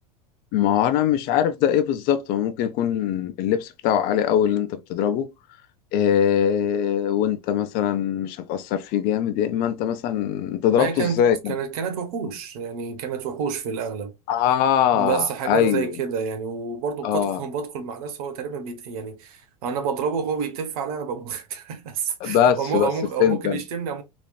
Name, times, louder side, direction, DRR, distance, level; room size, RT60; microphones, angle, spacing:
voice 1, 0.5-5.3 5.9-11.5 14.3-15.9 17.0-17.4 22.2-22.9 23.2-23.6, left 9 dB, 45° left, 0.7 m, -22 dB
voice 2, 10.7-14.1 14.9-24.0, right 6 dB, 65° right, 1.1 m, -29 dB
4.1 x 3.1 x 2.3 m
hypercardioid pair, 90°, 20 cm